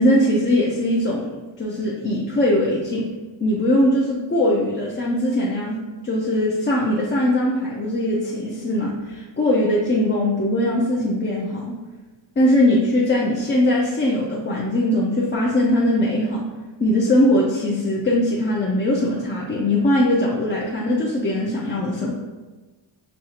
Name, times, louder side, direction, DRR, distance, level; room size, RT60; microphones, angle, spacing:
voice 1, 0.0-1.3 1.6-3.1 3.4-5.8 6.0-11.7 12.4-16.4 16.8-22.1, left 1 dB, 25° left, -4 dB, 0.4 m, -20 dB
5.2 x 2.3 x 2.8 m, 1.2 s
wide cardioid pair, 130°, 47 cm